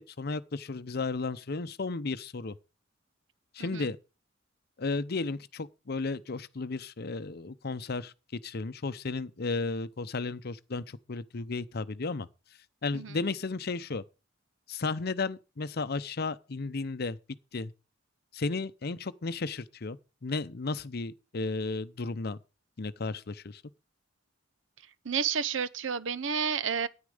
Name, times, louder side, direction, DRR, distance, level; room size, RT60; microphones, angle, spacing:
voice 1, 0.0-2.6 3.5-4.0 4.8-8.1 8.4-12.3 12.8-14.0 14.7-17.2 17.5-17.7 18.3-22.4 22.8-23.6, left 3 dB, 55° left, 0.7 m, -34 dB
voice 2, 25.0-26.9, right 6 dB, 75° right, 0.7 m, -30 dB
9.8 x 9.6 x 5.0 m
head